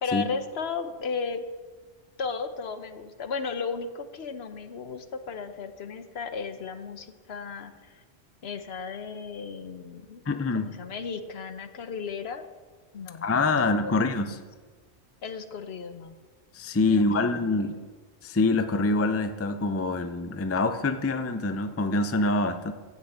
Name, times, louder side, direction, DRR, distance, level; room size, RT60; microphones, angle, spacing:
voice 1, 0.0-1.4 2.2-8.0 8.4-10.2 10.5-12.4 12.9-13.3 13.5-14.3 15.2-16.2 16.9-17.9, left 5 dB, 65° left, 9 dB, 1.1 m, -35 dB
voice 2, 10.3-10.7 13.2-14.4 16.5-17.8 18.2-22.7, left 3 dB, 20° left, 9 dB, 0.4 m, -25 dB
10.5 x 8.1 x 7.9 m, 1.4 s
omnidirectional pair, 1.2 m